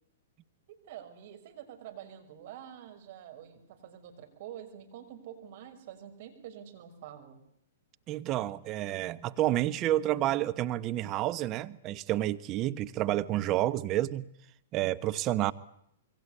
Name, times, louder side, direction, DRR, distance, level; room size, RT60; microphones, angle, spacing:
voice 1, 0.7-7.4, right 10 dB, 50° right, 6.0 m, -47 dB
voice 2, 8.1-14.2 14.7-15.5, right 14 dB, 30° right, 1.2 m, -29 dB
26.5 x 23.0 x 8.2 m
figure-of-eight pair, 115°, 0 cm